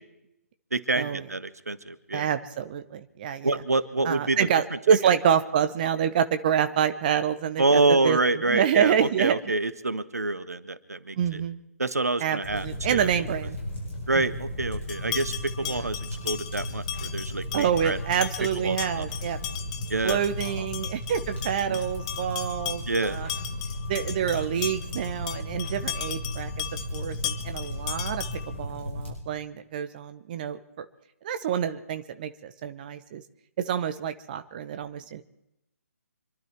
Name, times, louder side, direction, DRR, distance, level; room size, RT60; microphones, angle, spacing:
voice 1, 0.7-2.3 3.4-4.5 4.9-5.0 7.6-11.4 11.8-13.1 14.1-18.0 18.6-19.0 19.9-20.2 20.6-20.7 21.7-21.8 22.9-23.2, right 2 dB, 75° right, 14 dB, 1.2 m, -27 dB
voice 2, 2.1-3.6 4.0-8.2 8.5-9.4 11.2-11.6 12.2-13.6 14.1-14.2 15.6-15.9 17.5-19.4 20.0-23.3 23.9-30.8 31.2-33.2 33.7-35.2, right 8 dB, 30° right, 10 dB, 0.8 m, -27 dB
sound 1, 12.4-29.1, left 1 dB, 50° left, 7.8 m, -35 dB
sound 2, 14.9-28.6, left 11 dB, 25° left, 1.1 m, -37 dB
26.5 x 12.0 x 4.5 m, 0.83 s
figure-of-eight pair, 140°, 8 cm